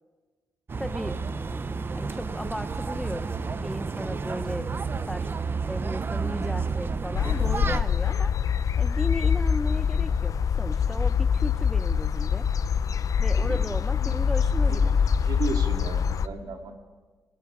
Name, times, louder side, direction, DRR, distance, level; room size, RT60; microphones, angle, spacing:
sound 1, 0.7-7.8, right 4 dB, 30° right, 0.7 m, -31 dB
voice 1, 0.8-1.2 1.7-8.3 8.8-12.5 13.2-15.0, left 1 dB, 5° left, 11 dB, 0.6 m, -36 dB
sound 2, 7.1-16.3, left 7 dB, 50° left, 0.6 m, -24 dB
voice 2, 15.1-16.8, right 4 dB, 65° right, 4 dB, 2.4 m, -35 dB
27.5 x 20.5 x 4.9 m, 1.4 s
wide cardioid pair, 140°, 7 cm